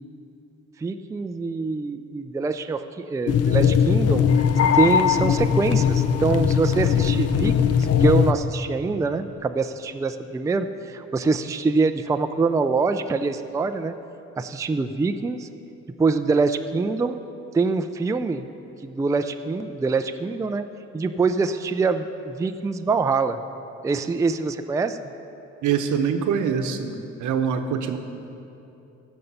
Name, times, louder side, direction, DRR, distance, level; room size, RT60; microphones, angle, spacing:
voice 1, 0.8-4.2 4.7-13.9 14.4-15.5 16.0-17.2 17.5-18.5 18.8-20.7 20.9-23.4 23.8-25.0, right 4 dB, 10° right, 9 dB, 0.3 m, -24 dB
sound 1, 3.3-8.3, left 7 dB, 55° left, 0.6 m, -20 dB
voice 2, 25.6-26.9 27.2-28.0, right 7 dB, 75° right, 7 dB, 0.9 m, -24 dB
15.0 x 5.4 x 5.5 m, 2.8 s
cardioid pair, 90°, 30 cm